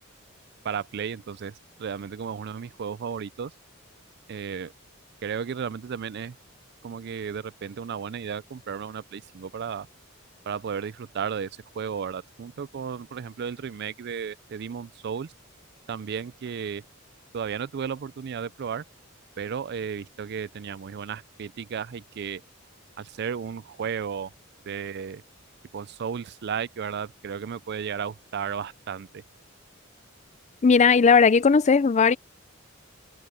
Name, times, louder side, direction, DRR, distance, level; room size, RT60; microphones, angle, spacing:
voice 1, 0.6-3.5 4.3-4.7 5.2-6.4 6.8-9.9 10.4-15.3 15.9-16.8 17.3-18.8 19.4-22.4 23.0-24.3 24.7-25.2 25.7-29.2, right 7 dB, 55° right, 0.4 m, -34 dB
voice 2, 30.6-32.2, left 5 dB, 35° left, 0.4 m, -17 dB
head